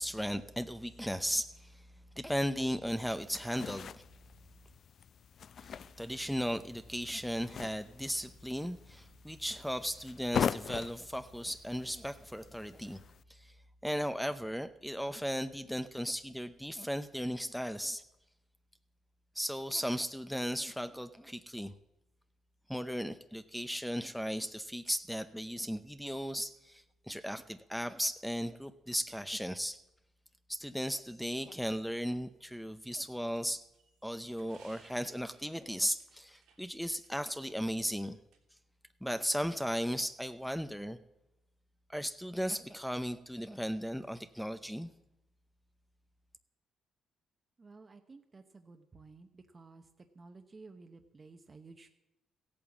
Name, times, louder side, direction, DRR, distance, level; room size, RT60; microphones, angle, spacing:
voice 1, 0.0-1.9 2.2-3.9 5.6-13.0 13.3-13.6 13.8-18.0 19.3-21.7 22.7-29.8 30.5-33.6 34.0-38.2 39.0-41.0 41.9-44.9, equal, ahead, 11 dB, 0.6 m, -36 dB
sound 1, 2.9-13.2, left 8 dB, 55° left, 0.4 m, -42 dB
sound 2, 33.3-37.3 37.6-37.7 38.3-38.4, right 6 dB, 85° right, 3.0 m, -64 dB
voice 2, 47.6-51.9, right 3 dB, 30° right, 5 dB, 0.9 m, -54 dB
15.0 x 8.7 x 7.2 m, 0.93 s
cardioid pair, 90°, 0 cm